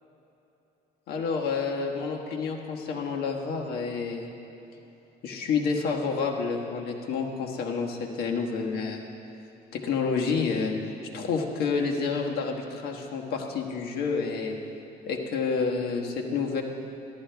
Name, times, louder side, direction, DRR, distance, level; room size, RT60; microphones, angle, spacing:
voice 1, 1.1-4.3 5.2-9.0 9.7-14.6 15.1-16.6, left 5 dB, 70° left, 1 dB, 1.3 m, -29 dB
13.5 x 11.5 x 3.4 m, 2.9 s
cardioid pair, 110°, 17 cm